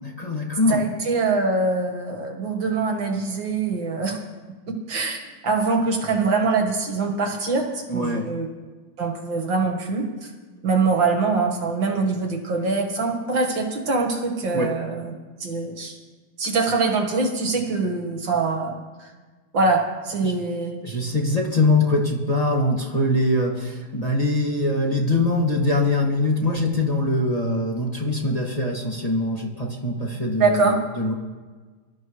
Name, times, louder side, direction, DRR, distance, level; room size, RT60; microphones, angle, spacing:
voice 1, 0.0-0.8 7.9-8.3 14.5-14.7 20.2-20.3 20.8-31.1, left 2 dB, 20° left, -2 dB, 1.9 m, -23 dB
voice 2, 0.7-4.2 4.7-8.5 9.0-10.3 10.6-15.1 15.4-16.0 16.4-19.1 19.5-20.8 30.4-30.8, right 3 dB, 65° right, 3 dB, 2.3 m, -24 dB
25.5 x 12.5 x 3.2 m, 1.4 s
omnidirectional pair, 2.3 m